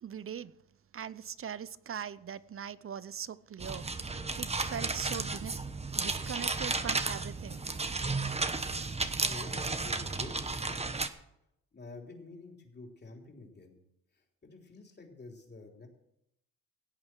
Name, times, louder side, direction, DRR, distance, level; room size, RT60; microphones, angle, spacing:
voice 1, 0.0-0.5 0.9-3.9 4.4-5.6 5.9-7.6, right 8 dB, 40° right, 0.6 m, -40 dB
sound 1, 3.6-11.1, right 3 dB, 20° right, 1.0 m, -33 dB
voice 2, 8.9-10.8 11.7-13.8 14.1-15.9, left 3 dB, 30° left, 3.5 m, -49 dB
17.0 x 8.6 x 6.2 m
cardioid pair, 85°, 35 cm